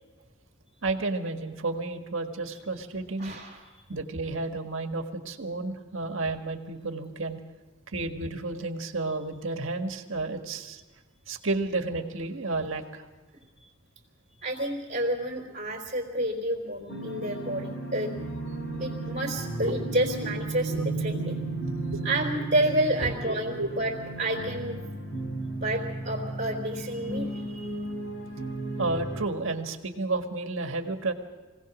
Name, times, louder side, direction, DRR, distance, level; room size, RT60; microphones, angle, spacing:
voice 1, 0.8-3.3 3.9-7.4 7.9-10.8 11.3-13.0 19.6-19.8 20.7-20.8 21.9-22.0 23.0-23.7 28.8-31.1, right 3 dB, 65° right, 5 dB, 1.7 m, -31 dB
voice 2, 3.2-3.6 13.6-13.7 14.4-18.1 18.8-21.4 22.0-23.9 24.2-24.9 25.6-27.8, right 1 dB, 35° right, -3 dB, 3.6 m, -30 dB
sound 1, 16.9-29.3, right 2 dB, 75° left, 4.2 m, -34 dB
24.0 x 17.5 x 6.2 m, 1.3 s
head